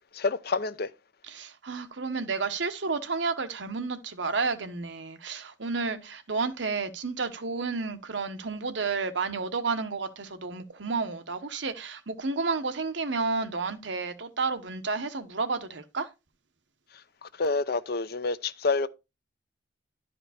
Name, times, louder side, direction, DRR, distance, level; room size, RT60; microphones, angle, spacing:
voice 1, 0.1-0.9 17.2-18.9, left 3 dB, 55° left, 0.6 m, -28 dB
voice 2, 1.3-16.1, right 4 dB, 75° right, 1.1 m, -31 dB
11.5 x 5.0 x 4.2 m
head